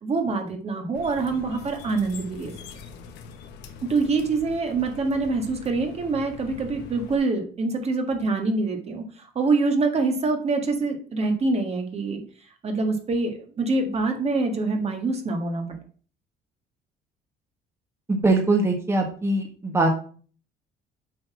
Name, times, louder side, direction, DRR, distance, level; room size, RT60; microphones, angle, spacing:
voice 1, 0.0-2.5 3.9-12.2 12.6-15.7, right 3 dB, 40° right, 4 dB, 1.6 m, -25 dB
sound 1, 0.9-7.2, left 5 dB, 85° left, 1.1 m, -43 dB
voice 2, 18.1-19.9, right 2 dB, 15° right, 2 dB, 1.4 m, -22 dB
7.5 x 4.1 x 6.0 m, 0.42 s
cardioid pair, 110°, 17 cm